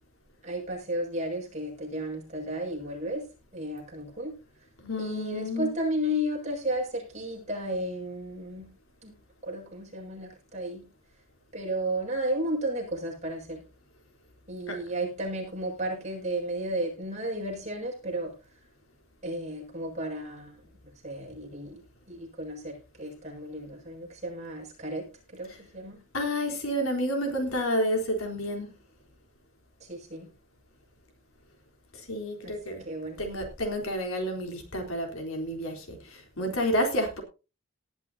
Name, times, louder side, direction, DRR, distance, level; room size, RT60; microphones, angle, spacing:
voice 1, 0.4-3.2 3.5-4.4 5.0-8.7 9.0-9.1 9.4-10.9 11.5-13.6 14.5-18.3 19.2-20.6 21.0-21.8 22.1-26.0 29.9-30.3 32.4-33.2, right 1 dB, 30° right, -1 dB, 6.9 m, -33 dB
voice 2, 4.8-5.7 14.7-14.8 26.1-28.7 32.1-32.8 33.2-36.0 36.4-37.2, equal, 75° left, 3 dB, 3.8 m, -29 dB
19.0 x 11.0 x 2.8 m, 0.31 s
head